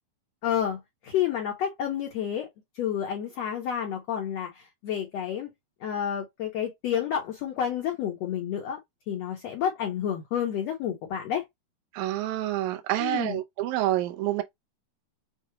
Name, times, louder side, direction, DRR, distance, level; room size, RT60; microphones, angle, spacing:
voice 1, 0.4-2.5 2.7-5.5 5.8-8.8 9.1-11.4 13.0-13.4, left 9 dB, 70° left, 1.5 m, -30 dB
voice 2, 11.9-14.4, right 15 dB, 80° right, 1.7 m, -28 dB
7.0 x 2.3 x 2.8 m
omnidirectional pair, 4.5 m